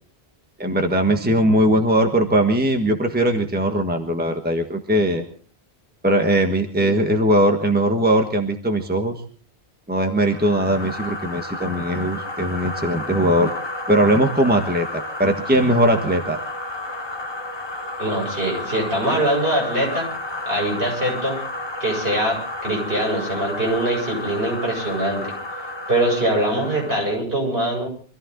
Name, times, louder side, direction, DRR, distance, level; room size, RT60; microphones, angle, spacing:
voice 1, 0.6-5.2 6.0-9.1 9.9-13.5 13.9-16.4, right 1 dB, 10° right, 4 dB, 1.4 m, -20 dB
sound 1, 10.2-27.2, left 2 dB, 25° left, 1.4 m, -32 dB
voice 2, 18.0-20.1 20.5-21.4 21.8-25.3 25.9-27.9, right 1 dB, 65° right, -1 dB, 7.5 m, -23 dB
25.0 x 14.5 x 3.9 m, 0.42 s
omnidirectional pair, 1.1 m